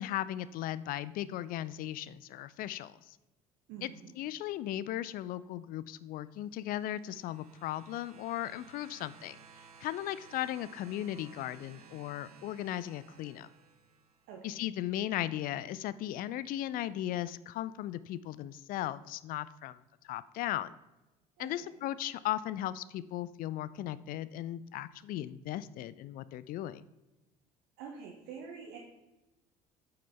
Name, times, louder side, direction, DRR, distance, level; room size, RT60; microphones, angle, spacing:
voice 1, 0.0-3.2 3.8-3.9 4.2-9.4 9.8-13.5 14.4-19.8 20.0-20.8 21.4-26.8, left 13 dB, 50° left, 17 dB, 0.4 m, -37 dB
voice 2, 3.7-4.1 14.3-14.6 21.4-21.5 27.8-28.8, right 6 dB, 65° right, 0 dB, 1.1 m, -46 dB
sound 1, 6.6-14.4 15.4-15.5, right 6 dB, 90° right, 0.5 m, -57 dB
8.6 x 5.4 x 3.7 m, 1.0 s
figure-of-eight pair, 60°, 19 cm